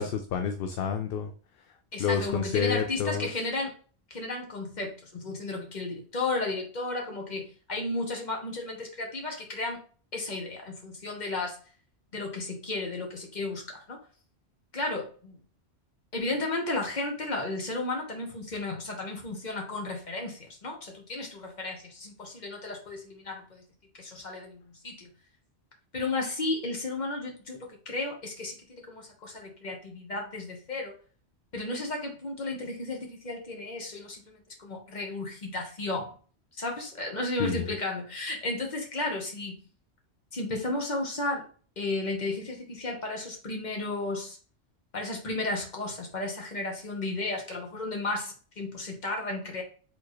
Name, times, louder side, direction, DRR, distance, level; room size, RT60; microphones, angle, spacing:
voice 1, 0.0-1.3 2.0-3.4 37.4-37.7, left 7 dB, 65° left, 5 dB, 0.7 m, -29 dB
voice 2, 1.9-3.7 4.1-9.8 10.1-11.6 12.1-14.0 14.7-15.4 16.1-23.6 24.0-25.1 25.9-30.9 31.5-36.1 36.5-39.6 40.3-41.4 41.8-44.4 44.9-49.6, left 2 dB, 45° left, 1 dB, 1.3 m, -33 dB
4.4 x 3.6 x 3.1 m, 0.40 s
omnidirectional pair, 1.1 m